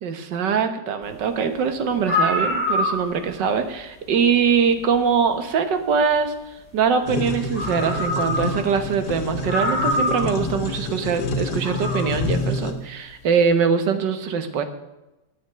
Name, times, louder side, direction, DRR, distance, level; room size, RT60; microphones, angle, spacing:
voice 1, 0.0-6.3 6.7-14.6, right 6 dB, 80° right, 9 dB, 1.8 m, -22 dB
sound 1, 1.6-1.7 2.0-3.4 4.8-4.9 7.1-7.2 7.5-8.7 9.0-9.1 9.5-10.4 11.5-12.1, left 1 dB, 5° right, 5.5 m, -24 dB
sound 2, 7.1-12.7, left 3 dB, 70° left, 1.7 m, -28 dB
9.1 x 8.2 x 8.8 m, 0.99 s
omnidirectional pair, 1.9 m